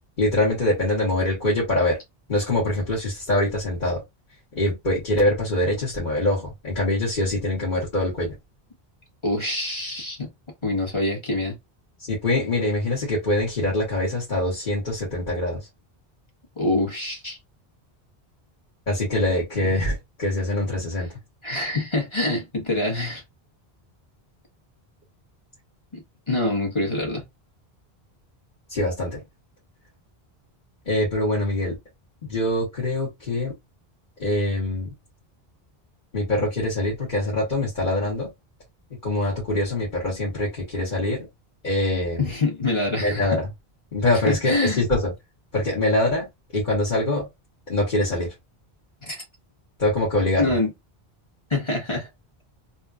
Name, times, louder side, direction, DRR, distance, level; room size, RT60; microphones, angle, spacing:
voice 1, 0.2-2.0 2.3-4.0 4.5-8.3 12.0-15.6 18.9-21.1 28.7-29.2 30.8-31.8 32.3-33.5 34.2-34.9 36.1-38.3 39.0-41.3 41.6-42.3 43.0-43.5 43.9-45.1 45.5-46.3 46.5-47.3 47.7-48.3 49.8-50.5, left 1 dB, 50° left, 1.7 m, -24 dB
voice 2, 9.2-10.3 10.6-11.6 16.6-17.4 21.4-23.2 25.9-27.2 42.2-43.4 44.3-44.8 49.1-49.2 50.4-50.7 51.5-52.1, left 2 dB, 30° left, 1.4 m, -25 dB
3.5 x 2.8 x 2.4 m
omnidirectional pair, 1.0 m